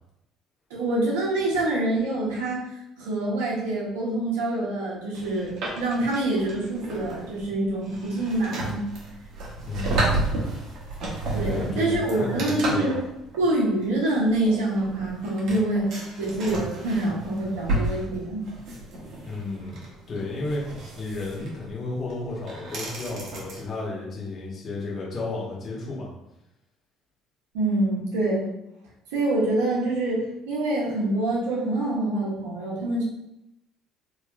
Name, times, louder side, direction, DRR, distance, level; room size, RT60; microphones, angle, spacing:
voice 1, 0.7-2.7 3.0-8.8 11.3-13.0 13.4-15.9 16.2-18.5 27.5-28.4 29.1-33.0, right 2 dB, 80° right, -5 dB, 1.2 m, -26 dB
sound 1, 5.1-23.6, right 2 dB, 60° right, 1.2 m, -32 dB
voice 2, 9.5-10.5 11.4-12.9 19.2-19.8 20.1-26.1, left 2 dB, 45° left, -4 dB, 1.5 m, -33 dB
3.4 x 3.2 x 2.5 m, 0.85 s
hypercardioid pair, 60°, 0 cm